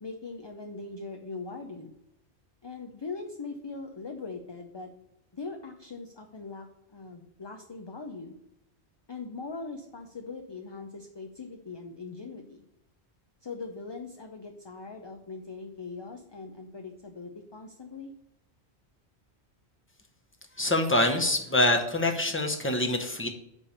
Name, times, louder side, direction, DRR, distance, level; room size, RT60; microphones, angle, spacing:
voice 1, 0.0-1.9 2.6-4.9 5.3-8.4 9.1-12.6 13.4-18.1, left 4 dB, 30° left, 3 dB, 0.5 m, -41 dB
voice 2, 20.6-23.3, left 1 dB, 10° left, 4 dB, 0.9 m, -25 dB
8.4 x 3.3 x 6.4 m, 0.83 s
omnidirectional pair, 1.1 m